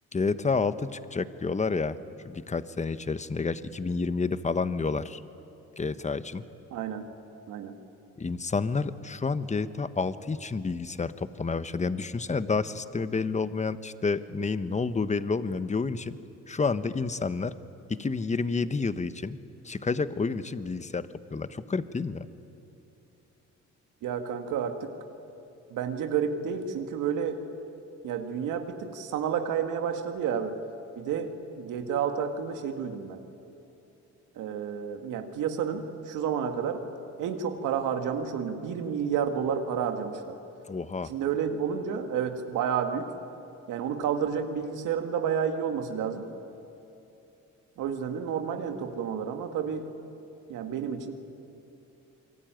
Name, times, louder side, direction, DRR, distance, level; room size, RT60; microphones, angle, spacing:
voice 1, 0.1-2.0 2.2-5.2 5.8-6.4 8.2-16.2 16.5-17.5 17.9-19.4 19.6-22.3 40.7-41.1, left 4 dB, 25° left, 12 dB, 1.1 m, -29 dB
voice 2, 6.7-7.1 7.5-7.8 24.0-24.9 25.7-27.4 28.0-30.6 31.0-33.2 34.4-36.8 37.2-40.4 41.0-43.1 43.7-46.3 47.8-49.9 50.5-51.1, right 7 dB, 85° right, 5 dB, 2.2 m, -30 dB
28.0 x 22.5 x 9.2 m, 2.9 s
cardioid pair, 90°, 30 cm